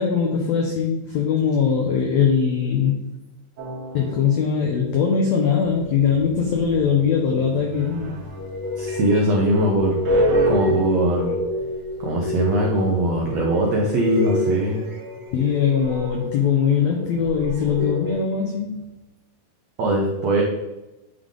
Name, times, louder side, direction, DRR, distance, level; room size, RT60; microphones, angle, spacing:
voice 1, 0.0-3.0 3.9-8.3 15.3-18.8, left 7 dB, 85° left, 1 dB, 1.5 m, -21 dB
sound 1, 3.6-4.4 6.1-6.9 7.7-18.2, left 1 dB, 60° right, 1.5 m, -27 dB
sound 2, 5.6-13.4, right 2 dB, 25° right, 1.2 m, -43 dB
voice 2, 8.8-11.4 12.0-14.8 19.8-20.4, right 1 dB, 85° right, -1 dB, 1.4 m, -21 dB
9.1 x 3.5 x 3.7 m, 1.0 s
omnidirectional pair, 4.1 m